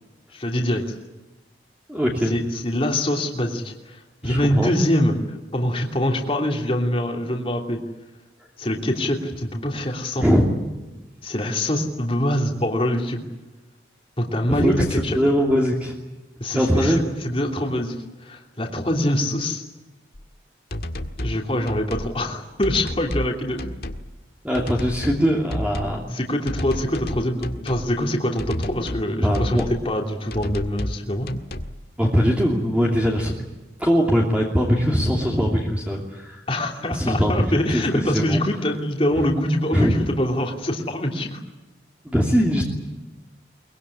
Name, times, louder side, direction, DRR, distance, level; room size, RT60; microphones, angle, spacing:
voice 1, 0.3-0.9 2.2-7.8 8.6-10.2 11.2-13.2 14.2-15.2 16.4-18.0 18.2-19.6 21.2-23.6 26.1-31.3 36.5-41.4, left 1 dB, 30° left, 1 dB, 3.0 m, -24 dB
voice 2, 1.9-2.3 4.2-4.7 10.2-10.4 14.5-15.9 16.5-17.0 24.4-26.2 29.2-29.7 32.0-33.3 33.8-36.4 36.9-38.4 39.7-39.9 42.0-42.6, equal, 10° right, -2 dB, 2.9 m, -21 dB
sound 1, 20.1-20.2 20.7-21.4 21.7-22.1 22.6-23.3 23.6-24.0 24.5-25.2 25.5-26.0 26.5-27.9 28.4-29.0 29.3-29.8 30.3-31.0 31.3-31.7, left 1 dB, 60° left, 1.8 m, -30 dB
23.0 x 21.5 x 9.9 m, 1.1 s
head